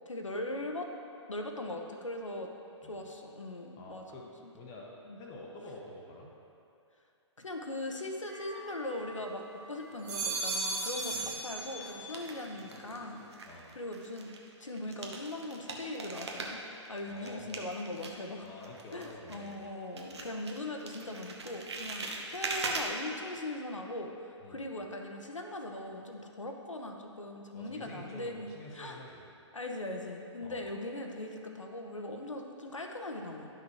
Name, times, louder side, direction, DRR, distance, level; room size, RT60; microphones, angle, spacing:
voice 1, 0.1-0.9 1.3-2.5 2.8-4.0 4.4-4.5 5.1-5.2 7.4-13.2 13.7-14.3 14.6-16.6 16.9-18.4 18.9-29.0 29.5-33.5, left 1 dB, 85° left, 2 dB, 0.9 m, -40 dB
voice 2, 3.8-4.3 4.5-4.9 5.2-6.3 11.1-11.3 13.4-13.7 17.1-17.5 18.4-19.6 24.4-24.6 27.5-29.2 30.4-30.6, left 2 dB, 20° left, -2 dB, 0.8 m, -48 dB
sound 1, 8.3-9.4 9.9-12.3 12.6-13.2, right 3 dB, 20° right, 1.1 m, -37 dB
sound 2, 10.0-10.6 11.2-13.0 13.3-19.7 20.0-22.8, right 3 dB, 60° right, 1.0 m, -41 dB
10.5 x 5.9 x 3.0 m, 2.7 s
figure-of-eight pair, 130°, 16 cm